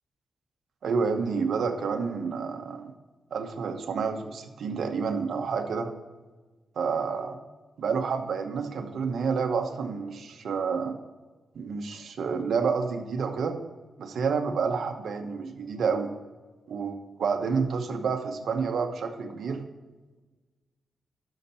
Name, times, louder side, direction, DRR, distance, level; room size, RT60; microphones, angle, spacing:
voice 1, 0.8-2.9 3.3-5.9 6.8-7.4 7.8-11.0 11.5-13.6 14.0-16.1 16.7-19.6, right 5 dB, 70° right, 6 dB, 1.0 m, -29 dB
12.5 x 5.9 x 4.4 m, 1.3 s
wide cardioid pair, 120°, 0 cm